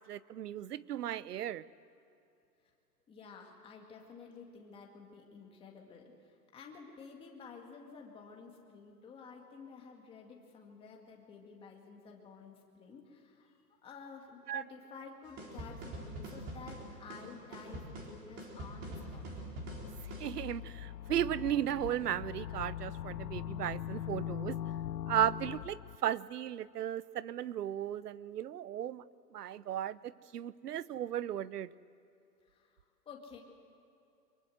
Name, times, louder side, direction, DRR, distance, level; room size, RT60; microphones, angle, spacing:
voice 1, 0.0-1.6 14.5-14.6 20.2-24.6 25.1-29.0 29.3-31.7, right 11 dB, 70° right, 19 dB, 0.9 m, -35 dB
voice 2, 3.1-19.2 32.4-33.4, left 5 dB, 10° left, 1 dB, 2.1 m, -52 dB
sound 1, 15.4-20.3, right 1 dB, 20° right, 4.0 m, -44 dB
sound 2, 19.7-26.0, left 11 dB, 85° left, 0.7 m, -41 dB
24.0 x 23.0 x 7.9 m, 2.7 s
hypercardioid pair, 155°, 49 cm